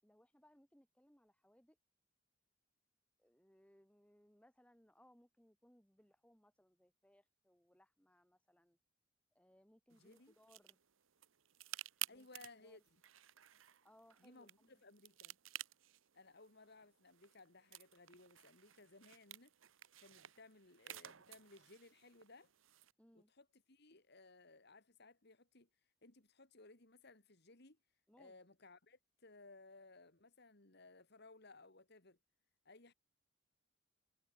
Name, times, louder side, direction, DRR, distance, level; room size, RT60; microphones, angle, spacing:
voice 1, 0.0-1.8 3.2-8.8 9.3-10.8 12.1-12.3 12.5-12.8 13.8-14.8 23.0-23.3 28.1-28.4, equal, 5° left, 6.8 m, -69 dB
voice 2, 9.9-10.3 12.1-13.0 14.2-15.4 16.1-19.5 20.0-22.5 23.1-25.7 26.0-27.8 28.2-32.2 32.6-32.9, left 3 dB, 55° left, 2.6 m, -61 dB
sound 1, 9.9-22.9, right 13 dB, 85° right, 1.1 m, -54 dB
head